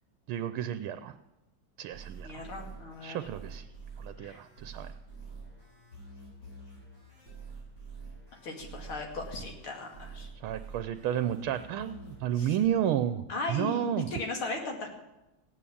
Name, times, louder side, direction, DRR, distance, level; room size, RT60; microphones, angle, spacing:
voice 1, 0.3-1.1 1.8-2.4 3.0-3.6 4.0-4.9 10.4-14.1, right 10 dB, 85° right, 11 dB, 1.5 m, -31 dB
sound 1, 1.9-12.7, right 4 dB, 55° left, 8.4 m, -47 dB
voice 2, 2.2-3.3 4.2-4.4 8.4-10.3 12.3-12.6 13.3-14.9, left 3 dB, 80° left, 1 dB, 3.2 m, -37 dB
16.5 x 9.2 x 8.5 m, 1.0 s
omnidirectional pair, 2.3 m